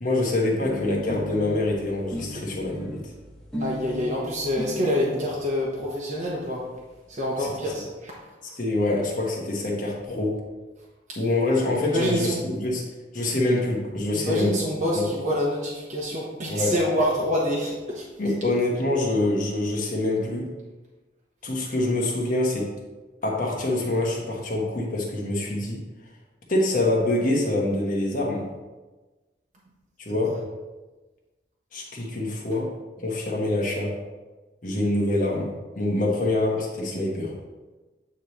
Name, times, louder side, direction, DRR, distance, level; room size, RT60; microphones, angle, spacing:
voice 1, 0.0-3.1 8.6-10.4 11.2-12.9 13.1-14.5 15.0-15.1 16.5-16.7 18.2-20.5 21.4-22.8 23.2-25.8 26.5-28.5 30.0-30.4 31.7-34.0 34.6-37.3, left 2 dB, 45° left, -2 dB, 1.4 m, -25 dB
sound 1, 0.6-5.2 6.1-6.2 6.4-6.5 6.8-6.9 7.0-7.7, equal, ahead, 1.2 m, -37 dB
voice 2, 3.6-6.6 7.1-8.5 11.1-11.2 11.5-12.4 14.1-18.1 30.1-30.4, equal, 40° right, -5 dB, 1.0 m, -27 dB
9.0 x 3.2 x 4.2 m, 1.2 s
head